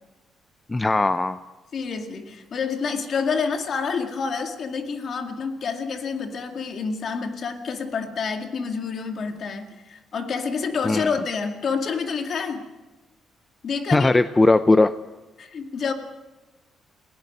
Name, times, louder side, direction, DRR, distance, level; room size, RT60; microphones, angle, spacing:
voice 1, 0.7-1.4 10.8-11.1 13.9-14.9, left 2 dB, 20° left, 12 dB, 0.6 m, -18 dB
voice 2, 1.7-12.7 13.6-14.2 15.4-15.9, left 5 dB, 55° left, 5 dB, 2.2 m, -28 dB
28.0 x 18.0 x 5.3 m, 1.1 s
cardioid pair, 90°, 0 cm